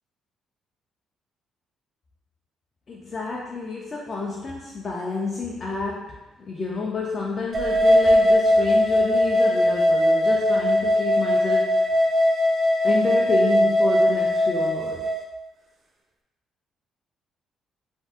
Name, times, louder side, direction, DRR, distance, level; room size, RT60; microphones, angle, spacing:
voice 1, 2.9-6.1 6.5-11.8 12.8-15.0, left 3 dB, 35° left, -4 dB, 0.4 m, -29 dB
sound 1, 7.5-15.2, left 1 dB, 40° right, 0.3 m, -20 dB
2.6 x 2.3 x 3.5 m, 1.0 s
cardioid pair, 135°, 0 cm